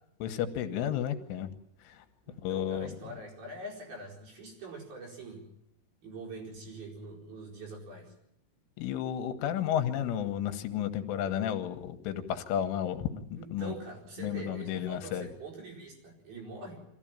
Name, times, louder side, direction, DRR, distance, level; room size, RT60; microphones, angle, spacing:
voice 1, 0.2-1.5 1.8-2.1 2.4-3.1 8.8-13.7 14.2-15.3, left 10 dB, 85° left, 8 dB, 3.7 m, -32 dB
voice 2, 2.2-5.4 6.0-8.1 13.4-16.8, right 2 dB, 50° right, 0 dB, 6.5 m, -44 dB
23.0 x 15.5 x 8.8 m, 0.77 s
omnidirectional pair, 5.5 m